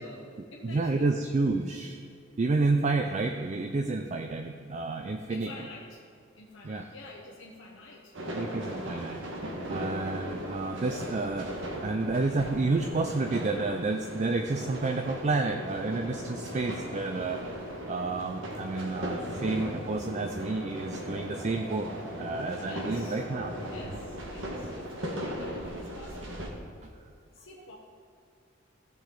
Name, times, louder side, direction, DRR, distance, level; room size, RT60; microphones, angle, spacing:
voice 1, 0.0-1.3 5.3-6.0 6.3-8.5 22.6-23.2 23.6-26.5 27.3-27.8, left 2 dB, 65° left, -3 dB, 1.0 m, -48 dB
voice 2, 0.6-2.0 2.4-5.5 6.6-6.8 8.3-9.2 9.7-17.4 17.9-21.9 22.2-23.5 23.8-24.0 26.8-26.9, right 3 dB, 35° right, 5 dB, 0.4 m, -30 dB
sound 1, 8.1-26.5, equal, 70° right, 1.5 m, -38 dB
sound 2, 15.7-23.9, left 1 dB, 35° left, 0.8 m, -46 dB
15.0 x 6.8 x 3.9 m, 2.3 s
head